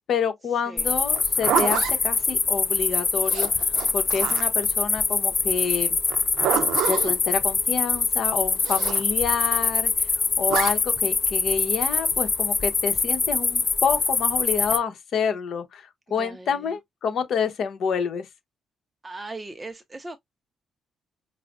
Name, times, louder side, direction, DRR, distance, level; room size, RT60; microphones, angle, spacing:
voice 1, 0.1-3.5 3.9-6.0 6.9-9.9 10.4-18.3, left 6 dB, 65° left, 0.9 m, -28 dB
sound 1, 0.8-14.8, left 4 dB, 35° left, 0.5 m, -24 dB
Zipper (clothing), 1.1-1.9 3.2-4.6 6.1-7.1 8.6-9.0 10.5-10.7, right 9 dB, 80° right, 0.6 m, -27 dB
voice 2, 16.2-16.7 19.0-20.2, right 2 dB, 20° right, 0.5 m, -38 dB
4.8 x 2.0 x 2.4 m
cardioid pair, 90°, 0 cm